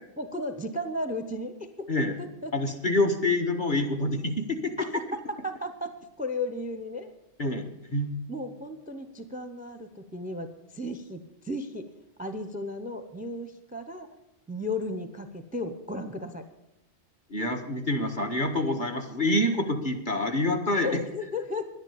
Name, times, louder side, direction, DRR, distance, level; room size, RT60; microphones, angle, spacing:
voice 1, 0.2-1.5 1.8-2.5 4.8-5.9 6.2-7.1 8.3-11.9 12.2-14.1 14.5-16.5 20.8-21.6, left 1 dB, 10° right, 9 dB, 0.7 m, -34 dB
voice 2, 2.5-4.7 7.4-8.1 17.3-20.9, left 1 dB, 45° left, 3 dB, 1.7 m, -27 dB
11.0 x 10.5 x 8.6 m, 0.90 s
omnidirectional pair, 1.2 m